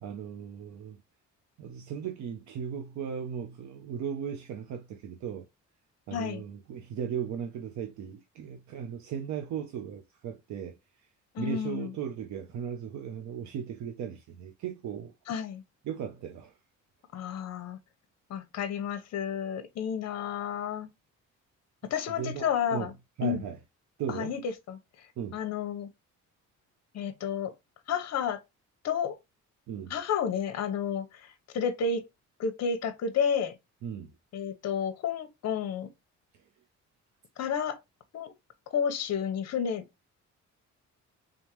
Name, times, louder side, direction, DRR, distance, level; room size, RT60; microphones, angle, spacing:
voice 1, 0.0-1.0 1.6-5.5 6.1-10.8 11.4-15.1 15.8-16.6 22.2-22.9 23.2-23.6 24.0-24.3 25.2-25.4 29.7-29.9 33.8-34.1, right 8 dB, 70° right, 0.7 m, -37 dB
voice 2, 6.1-6.4 11.3-11.9 15.3-15.6 17.1-17.8 18.3-20.9 21.8-22.9 23.2-23.4 24.1-24.8 25.3-25.9 26.9-27.5 27.9-28.4 28.8-29.2 29.9-32.0 32.4-33.6 34.3-35.9 37.4-37.8 38.1-38.3 38.7-39.8, left 7 dB, 60° left, 0.8 m, -31 dB
3.7 x 3.5 x 2.9 m
cardioid pair, 145°, 30 cm